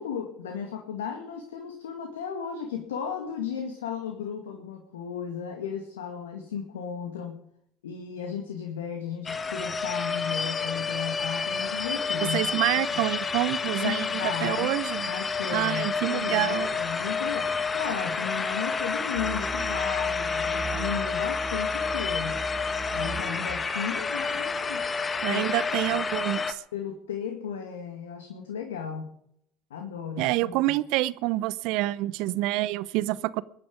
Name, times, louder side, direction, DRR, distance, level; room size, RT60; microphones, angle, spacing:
voice 1, 0.0-7.4 7.8-12.4 12.9-13.1 13.8-14.7 15.0-22.4 22.9-24.8 25.3-25.5 25.9-26.0 26.7-29.1 29.7-30.6, left 7 dB, 85° left, 3 dB, 2.0 m, -35 dB
sound 1, 9.3-26.5, left 5 dB, 25° left, 1.4 m, -29 dB
voice 2, 12.3-15.1 15.5-16.8 25.2-26.6 30.2-33.4, right 17 dB, 65° right, 19 dB, 0.7 m, -27 dB
Musical instrument, 19.1-23.6, right 4 dB, 30° right, 3.8 m, -39 dB
22.0 x 10.5 x 5.3 m, 0.71 s
hypercardioid pair, 70°, 0 cm